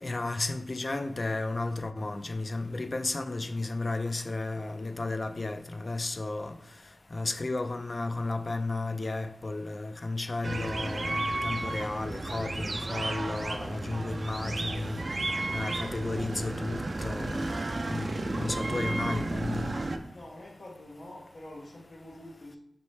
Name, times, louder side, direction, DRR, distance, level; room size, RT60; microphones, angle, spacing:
voice 1, 0.0-6.5 7.1-15.0 15.5-17.5 17.8-19.6, left 2 dB, 50° left, 8 dB, 0.4 m, -33 dB
sound 1, 10.4-20.0, right 2 dB, 55° right, 0.3 m, -33 dB
voice 2, 20.1-22.6, left 1 dB, 80° left, -5 dB, 0.9 m, -46 dB
4.2 x 3.1 x 3.2 m, 0.75 s
cardioid pair, 50°, 0 cm